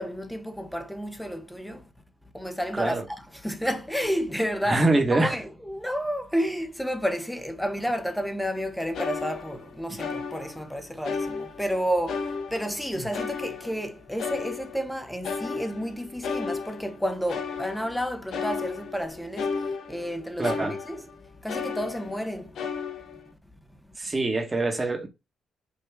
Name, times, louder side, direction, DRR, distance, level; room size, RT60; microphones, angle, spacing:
voice 1, 0.0-1.9 2.3-21.0 21.4-22.6, equal, 5° left, 1.0 m, -31 dB
voice 2, 2.7-3.0 4.6-5.4 12.9-13.0 20.4-20.8 24.0-25.1, right 2 dB, 25° right, 1.4 m, -24 dB
sound 1, 8.6-8.7 8.9-10.7 11.0-11.8 12.1-14.9 15.2-21.1 21.5-22.2 22.5-23.3, left 5 dB, 70° left, 1.0 m, -34 dB
5.5 x 2.6 x 3.6 m
cardioid pair, 90°, 0 cm